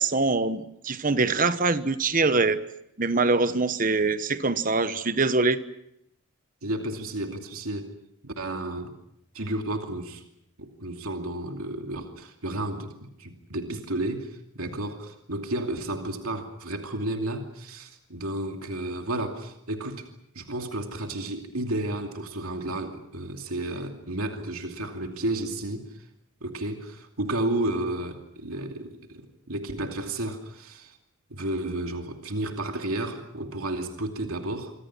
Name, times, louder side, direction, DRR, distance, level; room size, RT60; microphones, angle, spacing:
voice 1, 0.0-2.6 3.0-5.6, right 3 dB, 40° right, 12 dB, 1.1 m, -24 dB
voice 2, 6.6-7.9 8.2-8.9 9.3-10.2 10.6-20.1 20.3-26.0 26.4-31.0 31.3-34.7, right 1 dB, 80° right, 4 dB, 2.6 m, -32 dB
26.0 x 25.5 x 6.1 m, 0.77 s
head